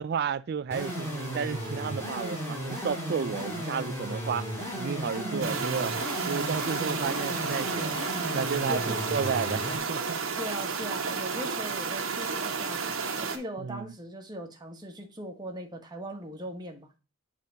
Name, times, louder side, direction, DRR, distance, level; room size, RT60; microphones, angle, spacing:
voice 1, 0.0-4.5 4.8-5.9 6.3-8.0 8.3-9.6 9.9-10.2 13.6-13.9, right 6 dB, 50° right, 0.3 m, -32 dB
sound 1, 0.7-9.8, equal, 10° left, 2.4 m, -35 dB
voice 2, 5.2-5.6 8.7-9.0 10.4-16.9, equal, 20° right, 1.2 m, -39 dB
sound 2, 5.4-13.4, right 5 dB, 70° right, 1.1 m, -32 dB
7.5 x 3.8 x 3.9 m
head